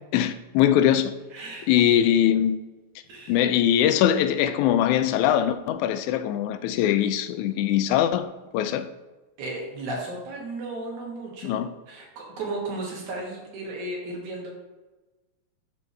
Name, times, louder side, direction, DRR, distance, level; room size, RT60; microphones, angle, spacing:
voice 1, 0.1-1.1 1.7-2.6 3.3-8.9 11.4-11.7, left 10 dB, 85° left, 1.9 m, -22 dB
voice 2, 1.3-1.7 3.1-3.4 9.4-14.5, right 2 dB, 75° right, 3.0 m, -34 dB
12.0 x 4.3 x 3.3 m
omnidirectional pair, 3.4 m